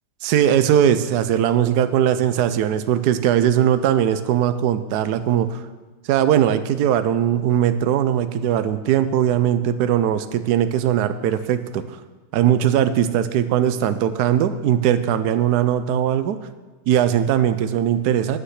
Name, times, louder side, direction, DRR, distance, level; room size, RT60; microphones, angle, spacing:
voice 1, 0.2-5.7 6.1-11.8 12.3-16.4 16.9-18.4, right 10 dB, 65° right, 11 dB, 1.0 m, -19 dB
9.6 x 8.9 x 6.5 m, 1.3 s
omnidirectional pair, 2.2 m